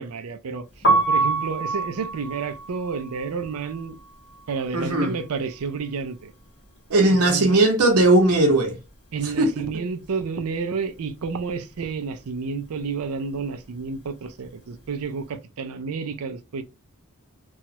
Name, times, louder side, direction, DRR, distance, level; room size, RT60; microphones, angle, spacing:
voice 1, 0.0-4.0 4.5-6.3 7.1-7.6 9.1-16.6, right 5 dB, 70° right, 0.4 m, -30 dB
Piano, 0.7-6.7 6.9-8.5 8.8-15.2, right 3 dB, 50° left, 1.0 m, -28 dB
voice 2, 4.7-5.1 6.9-8.8 9.2-9.5, right 2 dB, 90° right, 0.8 m, -18 dB
3.0 x 2.3 x 2.8 m
head